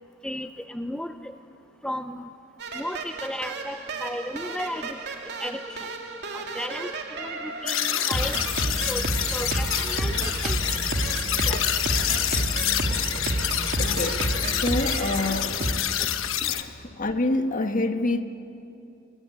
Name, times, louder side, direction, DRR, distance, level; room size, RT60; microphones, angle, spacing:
voice 1, 0.2-1.1 1.8-2.3 2.7-5.0 5.4-5.8 6.3-8.4 8.6-9.0 9.3-10.6 11.4-11.6, left 1 dB, 5° left, 0.6 m, -34 dB
sound 1, 2.6-15.7, right 2 dB, 55° right, 2.8 m, -30 dB
sound 2, 7.7-16.6, left 11 dB, 70° left, 1.1 m, -27 dB
voice 2, 13.8-15.7 16.4-18.2, left 2 dB, 40° left, 1.4 m, -27 dB
28.5 x 22.5 x 9.0 m
head